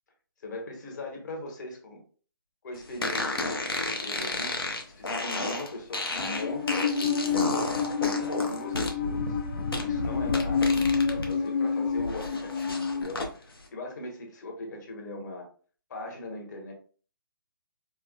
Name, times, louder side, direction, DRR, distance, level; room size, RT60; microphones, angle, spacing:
voice 1, 0.4-2.0 2.6-7.7 8.1-9.4 9.8-10.7 11.1-15.5 15.9-16.7, left 2 dB, 55° left, 2 dB, 1.2 m, -40 dB
sound 1, 3.0-11.3 11.7-13.3, left 2 dB, 85° left, 0.9 m, -32 dB
Musical instrument, 6.2-13.0, left 5 dB, 35° left, 0.5 m, -28 dB
4.6 x 2.2 x 2.3 m, 0.40 s
figure-of-eight pair, 145°, 12 cm